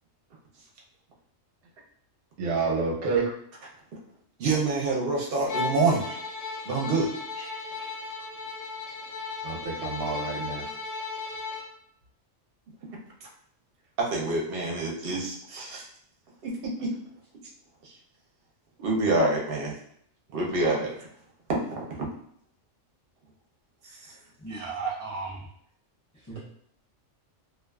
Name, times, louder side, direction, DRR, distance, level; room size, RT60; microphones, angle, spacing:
voice 1, 2.4-3.3 9.4-10.7, right 4 dB, 90° right, -1 dB, 1.0 m, -28 dB
voice 2, 4.4-6.2 6.7-7.1 7.4-7.5 14.0-15.8 16.4-16.9 18.8-19.7 20.3-21.1 21.8-22.1 23.9-24.1, right 2 dB, 60° right, -1 dB, 0.7 m, -27 dB
Bowed string instrument, 5.5-11.7, left 4 dB, 65° left, 0.8 m, -35 dB
voice 3, 24.4-25.5 26.2-26.4, right 4 dB, 30° left, -8 dB, 0.3 m, -34 dB
2.4 x 2.3 x 2.2 m, 0.67 s
omnidirectional pair, 1.3 m